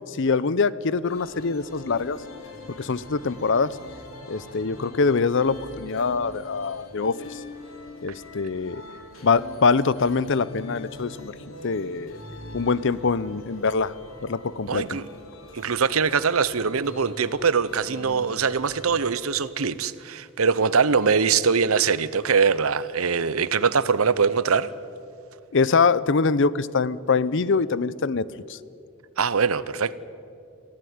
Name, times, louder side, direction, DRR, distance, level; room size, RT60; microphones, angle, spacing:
voice 1, 0.1-2.2 2.7-3.8 4.3-7.4 8.0-8.8 9.2-11.3 11.6-12.2 12.5-13.9 14.2-15.0 25.5-28.6, left 4 dB, 60° left, 0.6 m, -24 dB
sound 1, 1.1-19.1, left 1 dB, 75° left, 2.7 m, -43 dB
voice 2, 14.7-15.0 15.5-24.7 29.2-30.0, right 5 dB, 90° right, 0.8 m, -22 dB
23.5 x 15.5 x 9.5 m
head